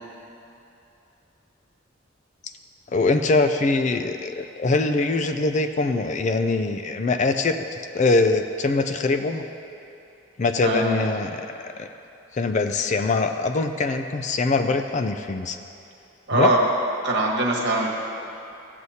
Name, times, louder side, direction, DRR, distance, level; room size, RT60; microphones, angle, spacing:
voice 1, 2.9-7.6 7.9-9.4 10.4-11.9 12.3-15.6 16.3-16.5, left 3 dB, 35° left, 7 dB, 0.4 m, -23 dB
voice 2, 10.6-11.0 16.3-16.6 17.0-17.9, right 2 dB, 60° right, -2 dB, 1.4 m, -22 dB
15.0 x 8.0 x 2.8 m, 2.8 s
head